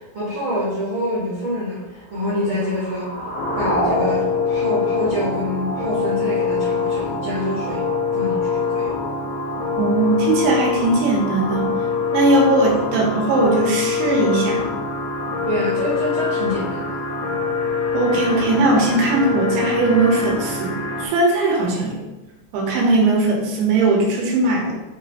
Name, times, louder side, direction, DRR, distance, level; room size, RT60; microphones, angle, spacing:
voice 1, 0.1-1.8 2.1-3.2 3.5-7.8 8.1-9.0 15.4-17.0 22.7-22.8, equal, 70° right, -10 dB, 1.2 m, -26 dB
sound 1, 2.0-6.0, left 1 dB, 75° left, 0.6 m, -28 dB
sound 2, 3.4-21.1, left 5 dB, 90° left, 3.0 m, -24 dB
voice 2, 9.8-11.7 12.1-14.7 17.9-22.0 22.5-24.7, right 2 dB, 85° right, -2 dB, 3.6 m, -19 dB
7.2 x 4.1 x 3.3 m, 1.0 s
omnidirectional pair, 5.2 m